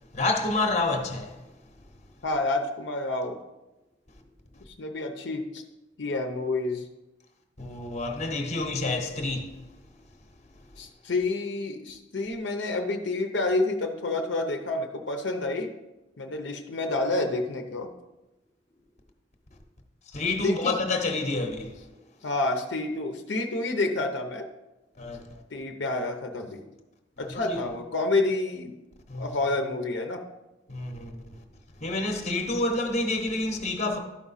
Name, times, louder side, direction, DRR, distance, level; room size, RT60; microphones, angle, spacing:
voice 1, 0.1-1.4 7.6-9.7 20.1-21.8 25.0-25.4 27.2-27.7 29.1-29.3 30.7-31.4 31.8-34.0, left 2 dB, 40° left, 0.9 m, -29 dB
voice 2, 2.2-3.4 4.8-5.6 6.0-6.8 10.8-15.7 16.2-17.9 20.4-20.8 22.2-24.4 25.5-26.6 27.2-28.8 29.2-30.2, left 2 dB, 70° left, 0.7 m, -29 dB
12.0 x 4.9 x 4.1 m
head